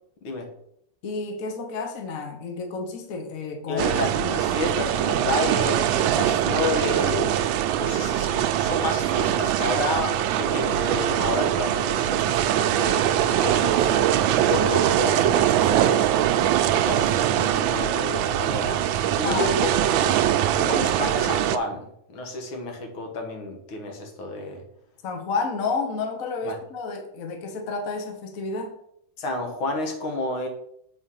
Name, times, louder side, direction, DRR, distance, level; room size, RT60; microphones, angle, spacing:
voice 1, 1.0-3.9 4.2-4.4 19.2-19.5 25.0-28.8, left 4 dB, 50° left, 4 dB, 1.3 m, -30 dB
voice 2, 3.7-7.4 7.8-14.0 14.4-16.1 16.6-20.2 20.5-24.7 26.4-26.6 29.2-30.5, left 2 dB, 75° left, 3 dB, 2.2 m, -30 dB
sound 1, 3.8-21.6, right 11 dB, 75° right, 1.3 m, -22 dB
7.8 x 4.3 x 5.6 m, 0.73 s
omnidirectional pair, 2.3 m